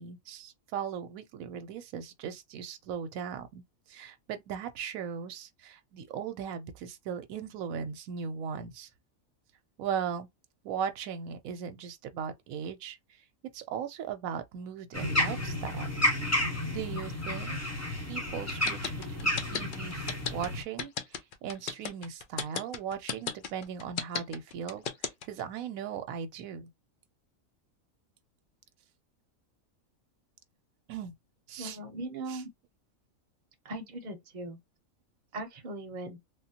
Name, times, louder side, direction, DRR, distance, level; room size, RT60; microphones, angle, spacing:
voice 1, 0.0-3.6 3.9-8.9 9.8-10.3 10.6-13.0 13.5-15.9 16.7-17.6 18.1-26.7 30.9-31.1 31.5-31.8 32.3-32.4, right 7 dB, 85° right, 1.0 m, -38 dB
sound 1, 14.9-20.6, left 1 dB, 15° left, 0.8 m, -31 dB
sound 2, 18.5-25.4, left 6 dB, 60° left, 0.5 m, -34 dB
voice 2, 31.6-32.5 33.6-34.6 35.3-36.2, right 2 dB, 40° right, 0.8 m, -39 dB
3.3 x 2.2 x 2.7 m
omnidirectional pair, 1.4 m